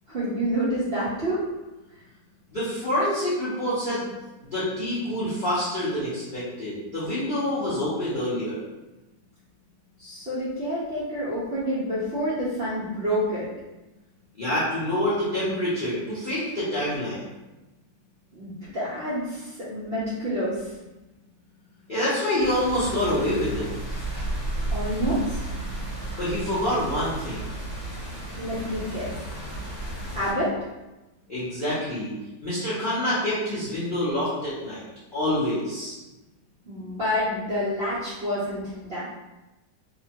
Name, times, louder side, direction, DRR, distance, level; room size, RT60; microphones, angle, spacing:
voice 1, 0.1-1.4 10.0-13.5 18.3-20.7 24.7-25.4 28.4-29.1 30.1-30.6 36.6-39.0, equal, 75° right, -10 dB, 0.5 m, -28 dB
voice 2, 2.5-4.1 4.4-8.6 14.4-17.2 21.9-23.7 26.2-27.4 31.3-32.1 32.4-34.8 35.1-36.0, left 1 dB, 65° left, -10 dB, 0.5 m, -26 dB
sound 1, 22.4-30.3, right 1 dB, 25° left, 1.1 m, -33 dB
2.9 x 2.1 x 2.8 m, 1.1 s
omnidirectional pair, 2.0 m